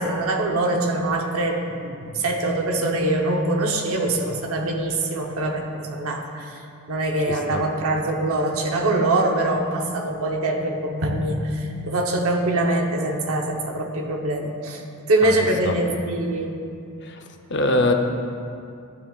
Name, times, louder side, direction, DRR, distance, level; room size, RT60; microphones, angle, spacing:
voice 1, 0.0-16.6, right 2 dB, 75° right, 2 dB, 0.9 m, -24 dB
voice 2, 7.3-7.6 15.2-15.4 15.6-15.7 17.0-17.2 17.5-17.9, left 2 dB, 50° left, 4 dB, 0.7 m, -23 dB
12.0 x 8.8 x 2.4 m, 2.5 s
head